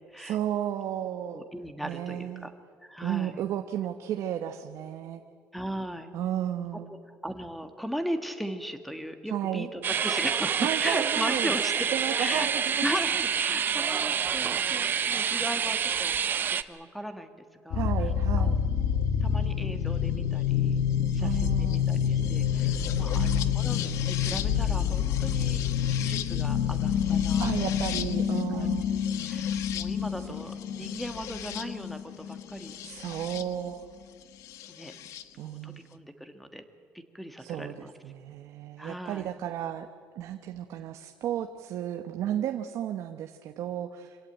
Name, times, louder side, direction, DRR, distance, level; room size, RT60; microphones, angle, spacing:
voice 1, 0.2-1.4 1.8-2.5 3.0-5.2 6.1-7.0 9.3-9.7 10.6-11.6 11.9-12.9 13.9-14.1 17.7-18.6 21.2-21.9 23.1-23.6 27.4-28.9 30.2-30.3 30.7-30.9 32.8-33.9 35.4-35.8 37.4-39.9 40.2-44.2, right 11 dB, 70° right, 7 dB, 1.0 m, -33 dB
voice 2, 1.3-2.5 2.8-3.4 5.5-6.1 7.2-11.7 12.2-12.5 12.8-16.2 16.5-17.9 18.4-18.5 19.2-20.8 21.1-23.8 24.0-25.6 25.9-27.5 28.5-28.7 29.3-33.0 34.7-34.9 35.4-36.6 37.1-37.9 38.8-39.3, equal, ahead, 8 dB, 1.6 m, -37 dB
sound 1, 9.8-16.6, right 7 dB, 40° right, 0.7 m, -28 dB
sound 2, 17.7-33.4 34.6-35.2, left 8 dB, 70° left, 1.1 m, -28 dB
26.0 x 17.0 x 9.0 m, 2.2 s
cardioid pair, 145°, 5 cm